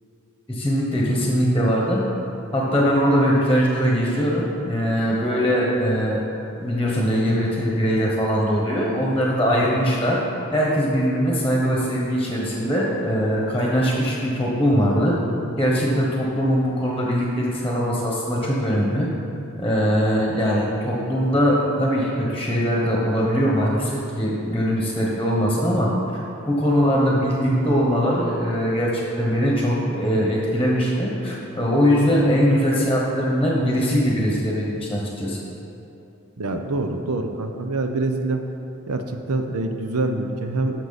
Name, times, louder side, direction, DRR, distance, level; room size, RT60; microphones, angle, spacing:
voice 1, 0.5-2.0 2.5-6.2 6.6-10.2 10.5-15.2 15.6-19.1 19.6-25.9 26.5-35.4, equal, 10° left, -3 dB, 1.2 m, -21 dB
voice 2, 36.4-38.4 38.9-40.8, right 2 dB, 85° right, 5 dB, 0.8 m, -25 dB
11.5 x 6.4 x 4.1 m, 2.8 s
head